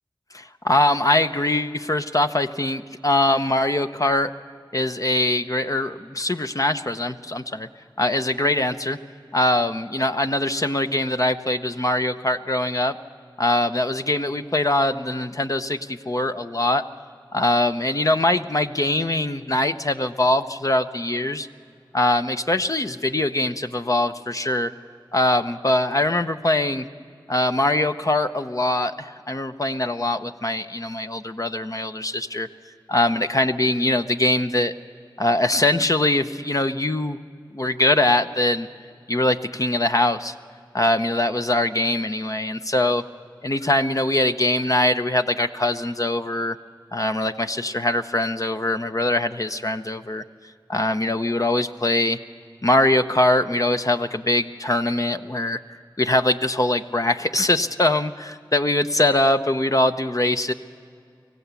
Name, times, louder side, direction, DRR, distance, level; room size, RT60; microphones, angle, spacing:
voice 1, 0.3-4.3 4.7-7.7 8.0-9.0 9.3-13.0 13.4-16.8 17.3-21.5 21.9-24.7 25.1-26.8 27.3-32.5 32.9-34.7 35.2-37.2 37.5-38.7 39.1-40.3 40.7-43.0 43.4-46.6 46.9-50.2 50.7-52.2 52.6-60.5, left 1 dB, 45° left, 8 dB, 0.8 m, -22 dB
24.5 x 16.5 x 8.3 m, 2.4 s
wide cardioid pair, 40°, 8 cm